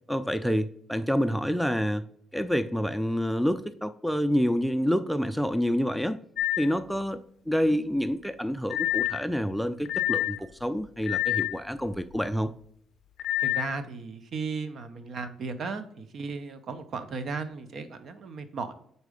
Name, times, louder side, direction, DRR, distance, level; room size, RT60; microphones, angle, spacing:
voice 1, 0.1-2.0 2.3-6.2 6.6-12.5, equal, ahead, 12 dB, 0.4 m, -28 dB
sound 1, 6.4-6.7 8.7-9.2 9.9-10.4 11.0-11.6 13.2-13.7, left 15 dB, 75° left, 0.4 m, -27 dB
voice 2, 13.4-18.7, right 4 dB, 60° right, 10 dB, 0.7 m, -35 dB
4.6 x 4.1 x 5.0 m, 0.65 s
cardioid pair, 90°, 0 cm